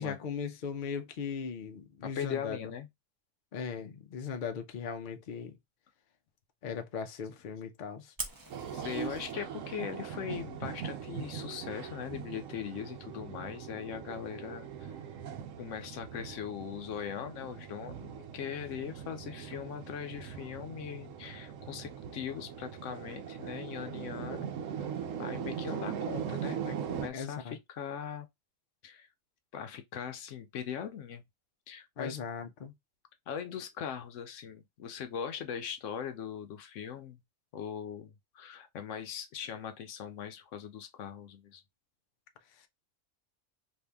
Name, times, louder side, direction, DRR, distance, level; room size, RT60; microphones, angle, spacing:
voice 1, 0.0-2.6 3.5-5.6 6.6-8.1 27.1-27.6 32.0-32.7 42.6-42.7, left 6 dB, 55° left, 0.6 m, -38 dB
voice 2, 2.0-2.9 8.7-15.0 15.6-24.5 24.8-24.9 25.2-28.3 28.8-29.1 29.5-31.2 31.7-32.2 33.3-37.2 37.5-41.6, left 8 dB, 80° left, 1.0 m, -40 dB
Fire, 8.2-9.3, right 2 dB, 25° right, 0.5 m, -42 dB
sound 1, 8.5-27.1, right 8 dB, 85° right, 1.0 m, -40 dB
2.7 x 2.6 x 3.3 m
omnidirectional pair, 1.3 m